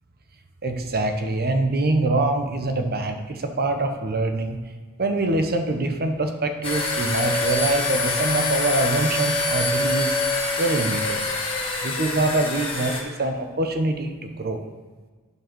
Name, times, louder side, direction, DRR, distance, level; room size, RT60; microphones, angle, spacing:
voice 1, 0.6-4.6 5.0-10.1 10.6-11.2 11.8-14.6, right 2 dB, 45° right, 6 dB, 0.9 m, -24 dB
sound 1, 6.6-13.0, left 2 dB, 25° left, 1.3 m, -25 dB
9.6 x 4.7 x 6.1 m, 1.4 s
head